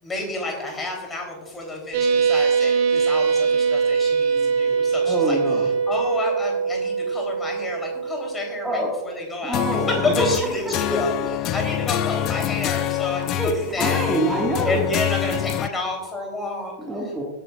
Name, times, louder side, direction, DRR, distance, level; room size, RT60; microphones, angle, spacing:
voice 1, 0.0-14.1 14.6-16.7, left 2 dB, 15° left, 1 dB, 3.5 m, -30 dB
sound 1, 1.9-10.0, right 5 dB, 50° right, 1.5 m, -23 dB
voice 2, 5.0-5.7 8.6-8.9 9.4-10.3 13.4-14.9 16.8-17.2, right 1 dB, 5° right, -3 dB, 2.0 m, -25 dB
sound 2, 9.5-15.7, left 13 dB, 35° left, 0.4 m, -26 dB
20.0 x 10.0 x 2.5 m, 1.2 s
figure-of-eight pair, 90°, 0 cm